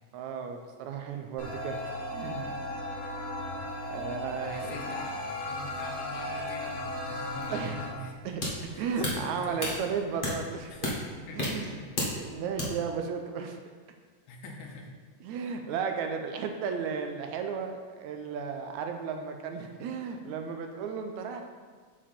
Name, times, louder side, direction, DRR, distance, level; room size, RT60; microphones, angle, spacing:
voice 1, 0.1-2.5 3.8-4.8 7.5-7.8 8.2-10.9 11.3-11.8 12.1-13.6 15.2-21.4, right 6 dB, 80° right, 5 dB, 1.9 m, -34 dB
sound 1, 1.4-7.9, left 1 dB, 65° left, 2.8 m, -36 dB
voice 2, 4.4-8.3 8.7-9.6 10.7-10.8 11.3-11.9 14.3-14.9, left 2 dB, 80° left, 1 dB, 2.4 m, -44 dB
sound 2, 7.3-12.6, left 1 dB, 30° left, 0.9 m, -34 dB
7.3 x 7.1 x 4.3 m, 1.5 s
omnidirectional pair, 3.5 m